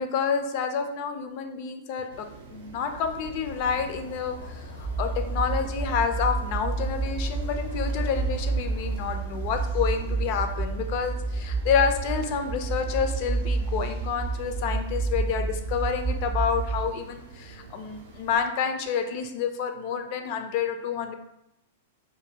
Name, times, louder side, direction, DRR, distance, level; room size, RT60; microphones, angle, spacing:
voice 1, 0.0-21.1, left 6 dB, 45° left, 6 dB, 0.4 m, -29 dB
sound 1, 2.1-18.4, right 5 dB, 65° right, 0.6 m, -47 dB
sound 2, 3.4-9.2, left 5 dB, 80° left, 0.7 m, -45 dB
sound 3, 4.8-16.8, right 3 dB, 10° right, 0.5 m, -29 dB
2.6 x 2.6 x 2.7 m, 0.83 s
figure-of-eight pair, 105°, 0 cm